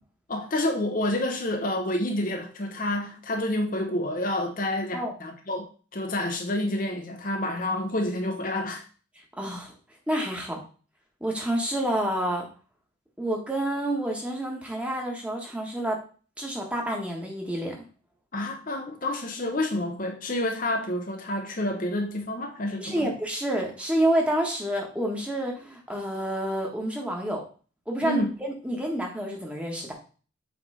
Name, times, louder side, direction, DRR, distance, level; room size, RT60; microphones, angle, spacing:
voice 1, 0.3-8.8 18.3-23.1 28.0-28.3, left 1 dB, 40° left, 0.9 m, -29 dB
voice 2, 9.4-9.7 10.1-10.6 11.2-12.4 13.2-16.0 16.4-17.8 22.8-27.4 27.9-29.9, right 1 dB, 5° right, 1.4 m, -28 dB
7.8 x 3.5 x 4.9 m
head